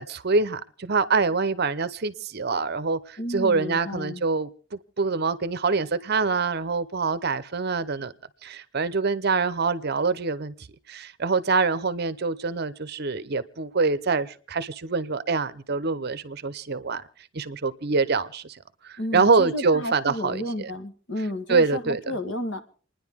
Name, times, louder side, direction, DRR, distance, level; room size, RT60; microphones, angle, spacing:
voice 1, 0.0-8.1 8.4-10.5 10.9-17.0 17.3-18.6 18.8-20.7 21.5-22.1, right 4 dB, 50° right, 14 dB, 0.8 m, -25 dB
voice 2, 3.2-4.2 19.0-22.6, left 1 dB, 60° left, 8 dB, 1.6 m, -32 dB
29.0 x 10.0 x 3.6 m, 0.43 s
head